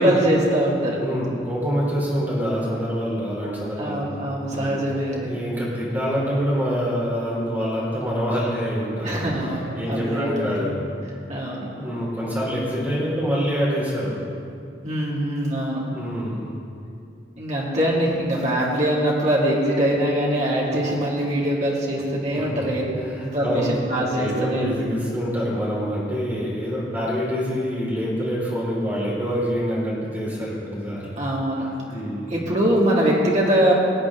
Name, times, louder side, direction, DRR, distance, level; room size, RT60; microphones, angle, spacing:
voice 1, 0.0-1.0 3.8-5.3 9.0-10.6 11.3-11.7 14.8-15.8 17.4-22.8 23.2-24.8 31.2-31.7 32.3-33.7, right 1 dB, 40° right, -5 dB, 2.4 m, -22 dB
voice 2, 0.9-4.0 4.5-4.8 5.2-9.2 9.5-10.8 11.7-14.1 15.7-16.5 22.3-22.6 23.0-23.7 24.1-31.1 31.6-32.3, equal, 10° right, -6 dB, 3.4 m, -26 dB
20.0 x 8.4 x 3.7 m, 2.5 s
head